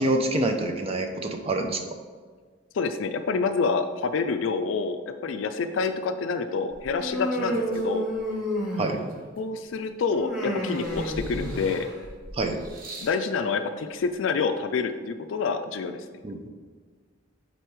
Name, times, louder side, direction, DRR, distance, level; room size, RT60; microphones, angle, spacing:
voice 1, 0.0-1.8 8.8-9.0 12.3-12.6 16.2-16.5, right 2 dB, 30° right, 5 dB, 0.5 m, -26 dB
voice 2, 2.7-8.0 9.4-11.9 13.0-16.0, left 4 dB, 70° left, 9 dB, 0.4 m, -27 dB
sound 1, 6.7-8.5 9.1-10.2 10.6-13.2 14.1-14.2, equal, 45° right, 0.9 m, -42 dB
Human voice, 7.0-9.2 10.1-12.0, equal, 5° right, 1.3 m, -30 dB
7.9 x 4.0 x 3.1 m, 1.5 s
head